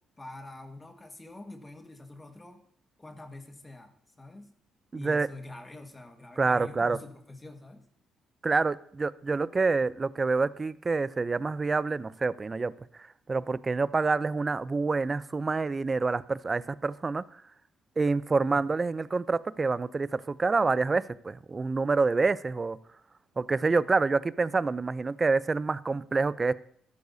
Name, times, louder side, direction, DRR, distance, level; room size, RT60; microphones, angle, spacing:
voice 1, 0.2-2.6 3.0-4.5 4.9-7.8, left 2 dB, 20° left, 4 dB, 1.6 m, -46 dB
voice 2, 4.9-5.3 6.4-7.0 8.4-12.7 13.3-17.2 18.0-22.8 23.4-26.5, right 4 dB, 30° right, 17 dB, 0.5 m, -27 dB
13.5 x 13.0 x 2.7 m, 0.65 s
cardioid pair, 90°, 0 cm